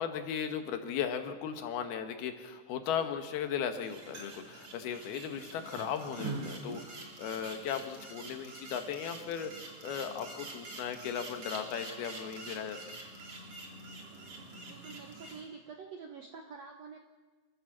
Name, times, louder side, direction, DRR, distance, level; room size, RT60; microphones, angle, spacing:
voice 1, 0.0-9.5 9.8-13.0, left 8 dB, 75° left, 7 dB, 3.2 m, -37 dB
sound 1, 3.8-15.4, right 3 dB, 35° right, 3.5 m, -45 dB
voice 2, 14.7-17.0, right 5 dB, 65° right, 4 dB, 1.7 m, -47 dB
27.5 x 14.0 x 7.3 m, 1.3 s
omnidirectional pair, 4.6 m